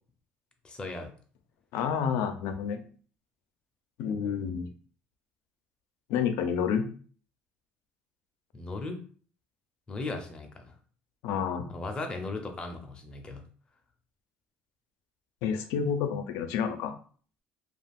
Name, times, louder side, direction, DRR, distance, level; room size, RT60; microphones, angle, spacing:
voice 1, 0.6-1.1 8.5-9.0 9.9-10.7 11.7-13.4, left 3 dB, 20° left, 4 dB, 0.5 m, -37 dB
voice 2, 1.7-2.8 4.0-4.7 6.1-6.9 11.2-11.7 15.4-16.9, left 7 dB, 80° left, 9 dB, 0.4 m, -29 dB
2.4 x 2.3 x 3.4 m, 0.43 s
cardioid pair, 130°, 4 cm